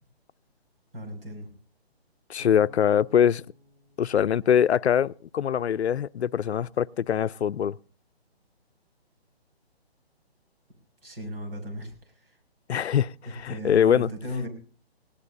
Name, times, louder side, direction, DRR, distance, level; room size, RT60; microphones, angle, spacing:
voice 1, 0.9-1.5 11.0-11.9 12.2-12.3 13.3-14.5, equal, 60° right, 6.1 m, -35 dB
voice 2, 2.3-3.4 4.0-7.8 12.7-14.1, left 9 dB, 85° left, 0.6 m, -23 dB
Bass guitar, 2.4-5.4, left 2 dB, 45° right, 5.1 m, -52 dB
19.5 x 17.5 x 2.7 m
hypercardioid pair, 175°, 32 cm